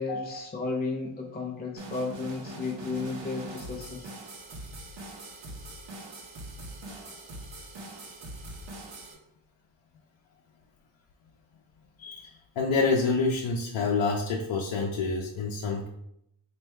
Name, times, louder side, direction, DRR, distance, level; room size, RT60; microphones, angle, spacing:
voice 1, 0.0-4.1, left 3 dB, 25° left, -1 dB, 0.4 m, -33 dB
sound 1, 1.8-9.1, right 1 dB, 75° right, 1.0 m, -42 dB
voice 2, 12.0-15.9, left 4 dB, 85° left, -1 dB, 0.6 m, -28 dB
4.5 x 2.6 x 3.2 m, 0.78 s
wide cardioid pair, 105°, 45 cm